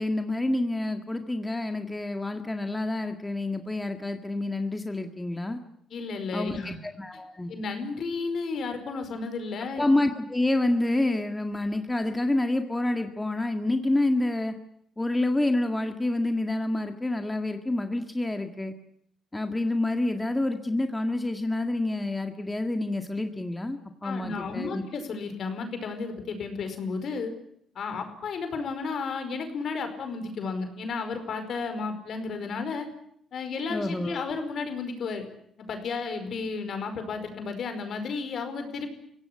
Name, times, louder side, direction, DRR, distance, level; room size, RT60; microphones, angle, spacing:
voice 1, 0.0-5.6 6.3-7.5 9.8-14.5 15.0-18.7 19.3-24.8 33.7-34.2, left 2 dB, 15° left, 6 dB, 1.9 m, -28 dB
voice 2, 5.9-6.8 7.5-9.8 24.0-27.3 27.7-32.9 33.3-35.2 35.7-38.9, left 4 dB, 60° left, 8 dB, 5.0 m, -33 dB
24.5 x 17.0 x 9.8 m, 0.72 s
cardioid pair, 90°, 0 cm